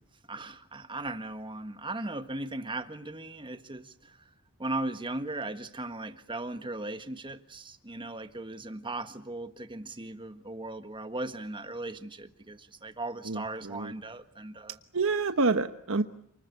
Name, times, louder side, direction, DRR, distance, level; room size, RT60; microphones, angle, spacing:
voice 1, 0.3-4.2 4.6-14.8, right 2 dB, 20° right, 1.5 m, -38 dB
voice 2, 13.3-13.9 14.9-16.0, right 3 dB, 65° right, 1.2 m, -28 dB
29.0 x 20.5 x 8.4 m
head